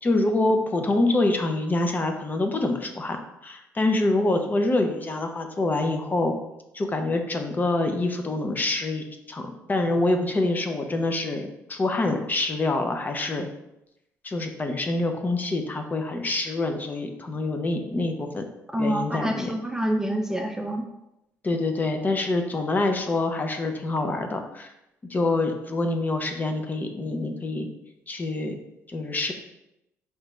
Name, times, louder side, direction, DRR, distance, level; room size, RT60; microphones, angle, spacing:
voice 1, 0.0-3.2 3.4-6.3 6.7-13.5 14.2-18.4 18.8-19.5 21.4-24.7 25.1-27.7 28.1-28.5 28.9-29.3, left 2 dB, 30° left, 5 dB, 0.7 m, -26 dB
voice 2, 18.7-20.8, equal, 10° right, 3 dB, 0.5 m, -27 dB
4.7 x 3.3 x 3.1 m, 0.86 s
supercardioid pair, 70°, 6 cm